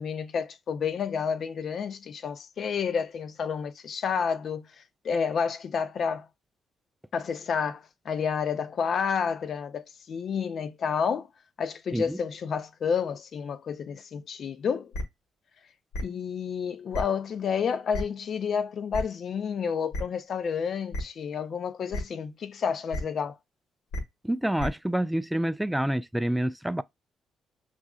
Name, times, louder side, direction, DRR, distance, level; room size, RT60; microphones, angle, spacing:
voice 1, 0.0-6.3 7.1-11.3 11.6-14.9 16.0-23.4, left 6 dB, 60° left, 0.5 m, -30 dB
sound 1, 14.9-15.0 15.9-16.0 16.9-17.0 17.9-18.0 18.9-19.0 19.9-20.0 20.9-21.0 21.9-22.0 22.9-23.0 23.9-24.0 24.6-24.7, left 1 dB, 80° left, 1.2 m, -31 dB
voice 2, 24.2-26.8, right 1 dB, 5° right, 0.3 m, -27 dB
6.1 x 2.5 x 2.3 m
hypercardioid pair, 55°, 0 cm